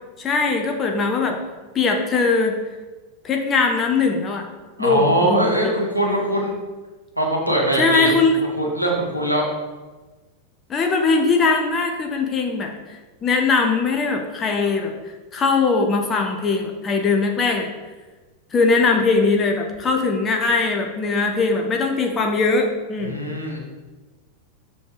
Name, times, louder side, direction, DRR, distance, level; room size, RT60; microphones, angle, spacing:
voice 1, 0.2-1.4 1.7-2.6 3.2-4.5 4.8-5.7 7.8-8.3 10.7-12.7 13.2-14.9 15.3-17.7 18.5-23.2, left 4 dB, 25° left, 3 dB, 0.9 m, -20 dB
voice 2, 4.8-6.5 7.2-8.1 8.4-9.4 23.0-23.6, right 1 dB, 90° left, -1 dB, 1.5 m, -21 dB
6.5 x 5.3 x 4.9 m, 1.2 s
figure-of-eight pair, 90°, 0 cm